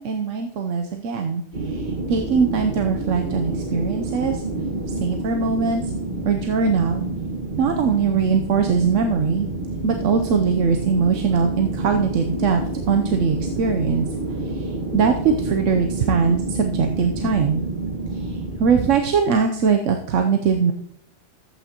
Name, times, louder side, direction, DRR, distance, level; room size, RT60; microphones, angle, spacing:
voice 1, 0.0-4.4 5.0-5.8 6.2-7.0 7.6-9.5 9.8-12.6 12.9-14.1 14.5-17.6 18.1-20.7, right 5 dB, 85° right, 4 dB, 1.1 m, -21 dB
sound 1, 1.5-19.0, right 2 dB, 45° right, 1.5 m, -28 dB
14.0 x 8.4 x 2.9 m, 0.70 s
omnidirectional pair, 1.2 m